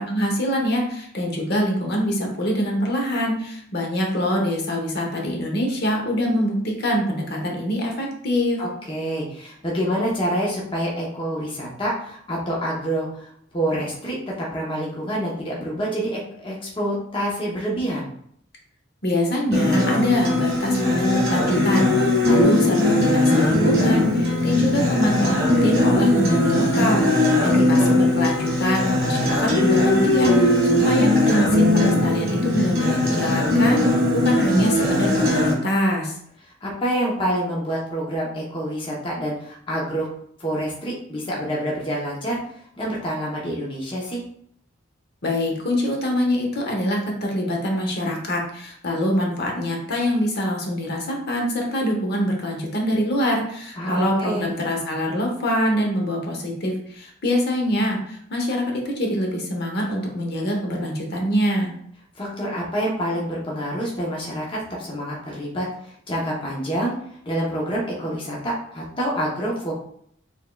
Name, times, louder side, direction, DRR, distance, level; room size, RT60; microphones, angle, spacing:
voice 1, 0.1-8.6 19.0-33.8 34.1-36.2 45.2-61.7, equal, 50° left, 0 dB, 0.9 m, -24 dB
voice 2, 8.6-18.1 27.4-28.0 36.6-40.1 40.4-44.2 53.8-54.5 62.1-66.9 67.2-69.7, equal, 25° left, -4 dB, 0.8 m, -27 dB
Acoustic guitar, 19.5-35.5, left 1 dB, 50° right, 1.6 m, -19 dB
5.0 x 3.6 x 2.3 m, 0.66 s
head